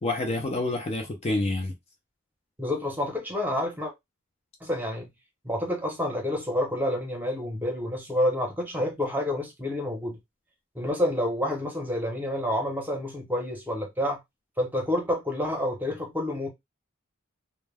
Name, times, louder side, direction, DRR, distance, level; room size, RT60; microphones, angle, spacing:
voice 1, 0.0-1.7, left 2 dB, 30° left, 0.4 m, -28 dB
voice 2, 2.6-3.9 4.6-5.1 5.4-10.2 10.7-14.2 14.6-16.5, left 1 dB, 10° right, 0.8 m, -28 dB
2.2 x 2.1 x 3.3 m
head